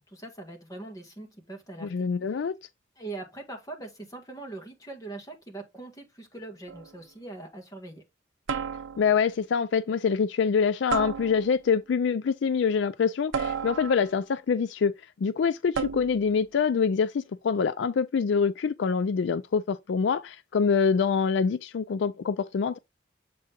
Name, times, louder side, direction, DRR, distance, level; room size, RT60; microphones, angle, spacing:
voice 1, 0.0-2.1 3.0-8.0, right 2 dB, 20° left, 1.9 m, -42 dB
voice 2, 1.8-2.5 9.0-14.9 15.2-22.8, left 6 dB, 65° left, 0.3 m, -25 dB
sound 1, 6.7-7.0 8.5-9.3 10.9-11.7 13.3-14.3 15.7-16.3, right 6 dB, 85° right, 0.6 m, -33 dB
7.6 x 3.7 x 3.6 m
head